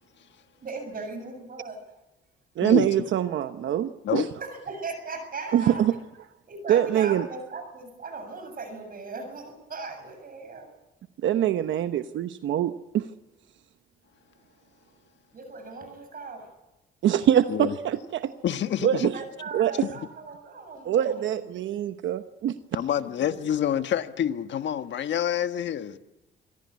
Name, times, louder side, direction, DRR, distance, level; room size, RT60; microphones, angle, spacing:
voice 1, 0.6-1.8 4.4-5.8 6.5-10.7 15.3-16.5 19.1-21.6 22.9-23.4, right 4 dB, 45° right, 7.5 m, -38 dB
voice 2, 2.6-4.3 5.5-5.9 6.7-7.3 11.2-13.1 17.0-18.3 18.8-19.1 19.5-19.9 20.9-22.6, right 10 dB, 70° right, 1.0 m, -24 dB
voice 3, 18.4-19.1 22.7-26.0, left 10 dB, 65° left, 1.4 m, -27 dB
25.5 x 17.0 x 9.5 m
cardioid pair, 90°, 20 cm